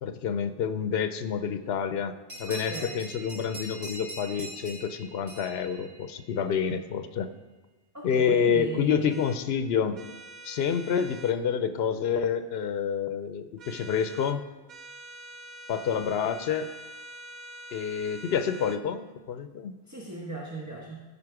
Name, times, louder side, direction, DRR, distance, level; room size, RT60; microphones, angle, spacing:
voice 1, 0.0-7.3 8.0-10.0 10.4-14.4 15.7-16.7 17.7-19.8, left 7 dB, 80° left, 10 dB, 0.9 m, -28 dB
sound 1, 2.3-6.5, equal, 85° right, 2.6 m, -42 dB
voice 2, 2.5-3.0 7.9-9.1 19.9-21.0, right 3 dB, 15° right, -3 dB, 1.1 m, -37 dB
sound 2, 9.1-9.4 9.9-11.4 13.6-14.4 14.7-18.8, right 1 dB, 50° right, 0.8 m, -45 dB
14.0 x 5.3 x 4.8 m, 1.2 s
omnidirectional pair, 1.0 m